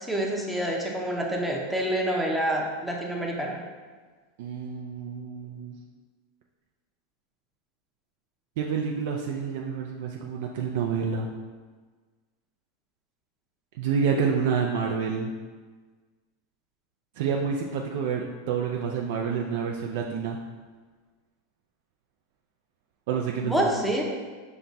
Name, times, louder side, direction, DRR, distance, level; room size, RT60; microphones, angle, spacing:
voice 1, 0.0-3.6 23.4-24.0, right 1 dB, 5° right, -2 dB, 0.6 m, -27 dB
voice 2, 4.4-5.8 8.6-11.3 13.8-15.3 17.2-20.4 23.1-23.7, right 6 dB, 65° right, 0 dB, 0.4 m, -28 dB
5.9 x 2.2 x 4.0 m, 1.4 s
supercardioid pair, 140°, 0 cm